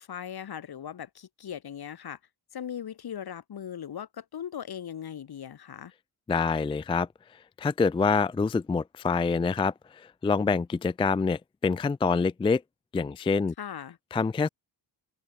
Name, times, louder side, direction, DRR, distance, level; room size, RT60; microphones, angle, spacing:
voice 1, 0.0-2.2 2.5-5.9 13.6-14.0, left 9 dB, 70° left, 7.3 m, -39 dB
voice 2, 6.3-7.1 7.6-12.6 12.9-13.5 14.1-14.5, left 4 dB, 15° left, 0.3 m, -26 dB
open air
cardioid pair, 115°, 39 cm